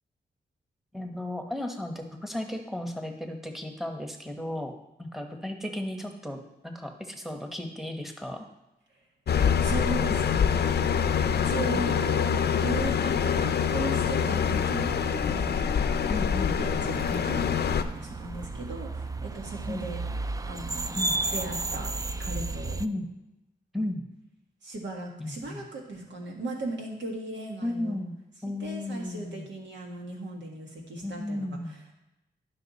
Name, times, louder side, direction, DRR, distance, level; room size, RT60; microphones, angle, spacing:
voice 1, 0.9-4.7 5.0-8.5 16.1-16.6 19.6-19.9 20.9-21.2 22.8-23.1 23.7-24.0 25.2-25.6 27.6-28.2 28.4-29.5 31.0-31.8, left 1 dB, ahead, 4 dB, 1.2 m, -34 dB
sound 1, 9.3-17.8, left 7 dB, 65° left, 0.5 m, -25 dB
voice 2, 9.6-15.7 16.6-20.0 20.5-21.0 21.3-21.9 22.2-22.8 24.6-28.0 28.6-31.6, right 2 dB, 90° right, 0 dB, 1.7 m, -37 dB
sound 2, 13.2-22.9, right 2 dB, 20° right, 0.4 m, -35 dB
11.0 x 5.8 x 4.1 m, 0.91 s
cardioid pair, 75°, 18 cm